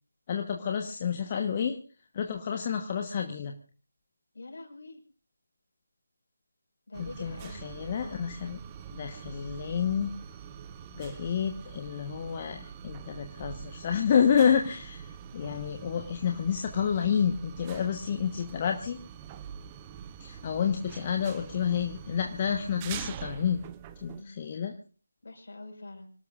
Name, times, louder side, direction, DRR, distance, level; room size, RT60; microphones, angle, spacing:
voice 1, 0.3-1.8 2.1-3.6 7.0-8.6 8.9-10.1 10.9-19.0 20.2-23.6 24.0-24.7, left 7 dB, 25° left, 5 dB, 1.2 m, -29 dB
voice 2, 4.3-5.0 6.9-7.7 24.1-24.5 25.2-26.1, left 2 dB, 55° left, 5 dB, 5.3 m, -45 dB
sound 1, 6.9-24.2, right 8 dB, 15° right, 0.7 m, -44 dB
26.5 x 18.0 x 2.5 m, 0.36 s
figure-of-eight pair, 160°, 0 cm